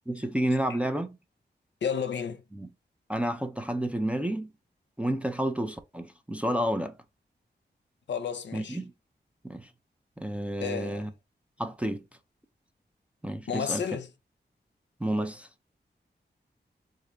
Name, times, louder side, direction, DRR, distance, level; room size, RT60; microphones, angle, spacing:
voice 1, 0.1-1.2 2.5-2.7 3.1-4.5 5.0-6.9 8.5-8.9 9.4-9.7 10.2-11.1 11.6-12.0 13.2-13.8 15.0-15.5, right 1 dB, 5° right, 0.3 m, -30 dB
voice 2, 1.8-2.4 8.1-8.8 10.6-11.1 13.5-14.1, left 7 dB, 80° left, 0.6 m, -31 dB
3.7 x 3.1 x 2.5 m
wide cardioid pair, 175°, 18 cm